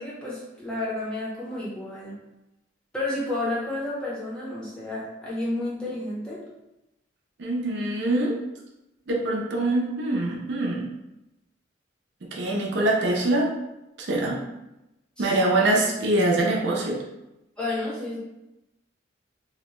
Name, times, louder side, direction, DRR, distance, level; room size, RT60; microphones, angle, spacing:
voice 1, 0.0-2.1 2.9-6.4 15.2-15.4 17.6-18.2, left 2 dB, 5° left, -7 dB, 0.6 m, -31 dB
voice 2, 7.4-8.4 9.1-10.9 12.2-13.5 14.0-14.4 15.2-17.0, right 2 dB, 70° right, -1 dB, 0.5 m, -24 dB
2.7 x 2.1 x 3.0 m, 0.92 s
head